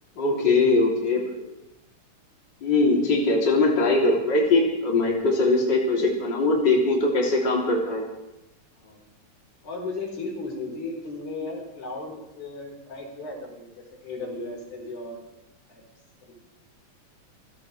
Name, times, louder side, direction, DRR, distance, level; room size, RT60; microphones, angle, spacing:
voice 1, 0.2-1.5 2.6-8.0, left 2 dB, 35° left, -2 dB, 3.5 m, -21 dB
voice 2, 9.6-15.2 15.7-15.8 16.2-16.3, left 3 dB, 90° left, -1 dB, 5.6 m, -35 dB
27.5 x 15.5 x 3.3 m, 0.93 s
omnidirectional pair, 3.4 m